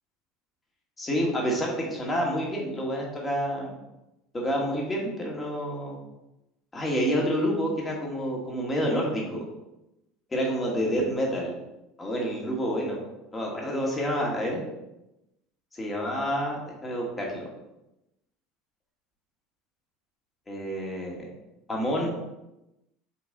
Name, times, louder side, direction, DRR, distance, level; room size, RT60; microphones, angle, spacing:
voice 1, 1.0-3.7 4.3-6.0 6.7-9.4 10.3-11.5 12.0-13.0 13.3-14.6 15.7-17.5 20.5-21.2 21.7-22.1, equal, 20° left, -2 dB, 2.1 m, -28 dB
6.8 x 4.0 x 3.9 m, 0.94 s
hypercardioid pair, 85°, 0 cm